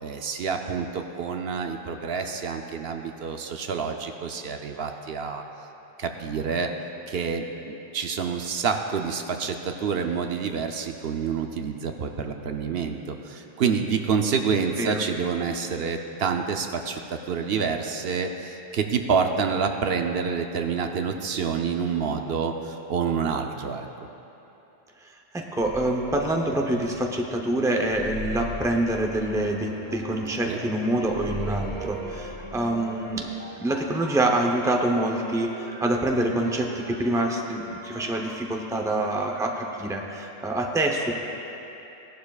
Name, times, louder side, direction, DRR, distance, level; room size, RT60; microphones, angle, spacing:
voice 1, 0.0-5.4 6.0-6.7 7.1-23.9 30.4-30.6, right 6 dB, 70° right, 4 dB, 0.9 m, -28 dB
voice 2, 25.3-33.3 33.6-41.2, right 1 dB, 5° right, 1 dB, 0.7 m, -26 dB
sound 1, 25.6-33.2, equal, 35° left, 2.2 m, -39 dB
sound 2, 29.3-38.4, right 2 dB, 25° right, 1.4 m, -41 dB
17.5 x 11.5 x 2.4 m, 3.0 s
omnidirectional pair, 1.1 m